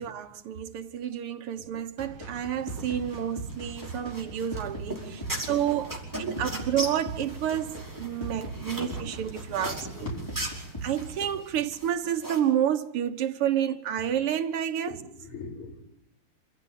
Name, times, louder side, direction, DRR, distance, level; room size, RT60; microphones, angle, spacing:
voice 1, 0.0-10.1 10.8-15.0, right 10 dB, 90° right, 2.2 m, -30 dB
sound 1, 2.0-11.3, right 2 dB, 10° left, 5.3 m, -39 dB
sound 2, 2.7-12.4, right 1 dB, 10° right, 5.0 m, -39 dB
voice 2, 8.8-9.2 9.6-10.2 14.9-15.8, left 2 dB, 75° left, 6.0 m, -42 dB
27.5 x 15.0 x 9.3 m
omnidirectional pair, 2.4 m